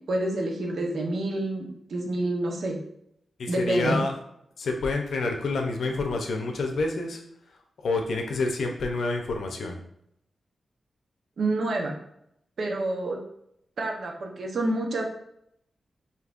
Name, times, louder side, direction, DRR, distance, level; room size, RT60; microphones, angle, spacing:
voice 1, 0.1-2.8 3.5-4.0 11.4-12.0 12.6-13.2 13.8-15.0, right 2 dB, 70° right, 1 dB, 0.8 m, -28 dB
voice 2, 3.4-4.1 4.6-7.2 7.8-9.8, left 3 dB, 85° left, 3 dB, 0.6 m, -28 dB
5.1 x 2.8 x 2.5 m, 0.74 s
wide cardioid pair, 105°, 0 cm